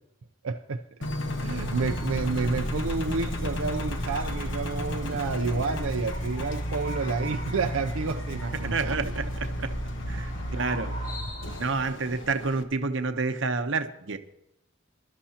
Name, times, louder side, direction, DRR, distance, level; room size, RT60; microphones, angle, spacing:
voice 1, 0.4-0.8 1.4-9.0, right 4 dB, 80° right, 0.5 m, -30 dB
Engine, 1.0-12.6, equal, 55° left, 1.1 m, -32 dB
sound 1, 1.5-11.7, equal, 40° left, 1.4 m, -45 dB
voice 2, 8.6-9.7 10.1-10.9 11.6-14.2, right 4 dB, 60° right, 0.9 m, -29 dB
21.5 x 12.0 x 2.9 m
head